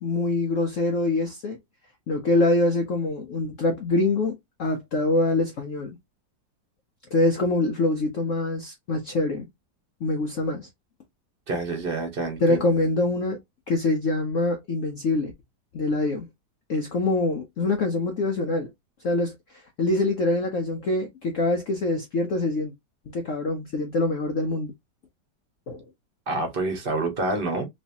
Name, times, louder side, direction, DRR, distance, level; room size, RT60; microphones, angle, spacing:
voice 1, 0.0-1.6 2.1-6.0 7.1-9.5 10.0-10.7 12.4-13.4 13.7-15.3 15.7-16.3 16.7-18.7 19.0-22.7 23.1-24.7 25.7-25.8, left 2 dB, 65° left, 0.8 m, -24 dB
voice 2, 11.5-12.6 26.3-27.7, right 2 dB, 35° right, 1.0 m, -27 dB
3.2 x 3.2 x 2.7 m
omnidirectional pair, 2.0 m